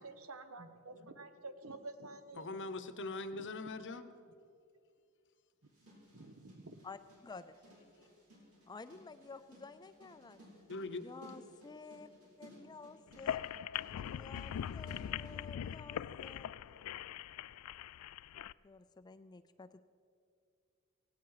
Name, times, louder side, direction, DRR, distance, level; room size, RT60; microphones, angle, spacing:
voice 1, 0.0-2.5 3.3-3.5 6.1-6.8, right 2 dB, 65° right, 10 dB, 1.0 m, -50 dB
voice 2, 2.4-4.1 10.7-11.1, left 2 dB, 55° left, 11 dB, 0.9 m, -42 dB
Snaredrum vintage Lefima Brushes and Sticks, 5.6-15.4, equal, 85° right, 5.3 m, -60 dB
voice 3, 6.8-7.6 8.7-10.4 11.0-12.1 12.4-13.5 13.9-16.6 18.6-19.8, left 4 dB, 20° left, 11 dB, 0.4 m, -52 dB
sound 1, 13.1-18.5, left 10 dB, 90° left, 0.3 m, -41 dB
17.5 x 17.0 x 4.9 m, 2.4 s
head